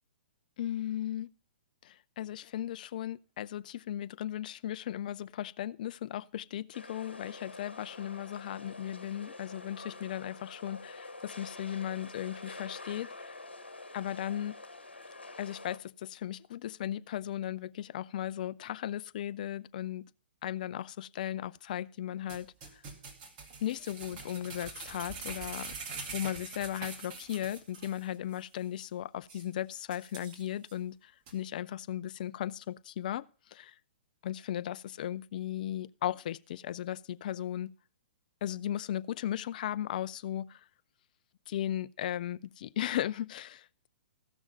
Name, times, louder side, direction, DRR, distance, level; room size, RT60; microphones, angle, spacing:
voice 1, 0.6-1.3 1.8-13.4 13.9-14.5 15.4-20.1 20.4-22.8 23.6-25.7 26.1-33.7 34.2-37.7 38.4-40.6 41.5-43.9, left 11 dB, 50° left, 0.4 m, -36 dB
sound 1, 6.7-15.8, left 2 dB, 85° left, 1.1 m, -47 dB
sound 2, 22.3-28.0 28.3-28.4 28.8-28.9 29.3-29.4 29.9-30.7 31.3-31.4, right 4 dB, 35° right, 2.3 m, -44 dB
15.0 x 6.3 x 5.3 m
figure-of-eight pair, 120°, 6 cm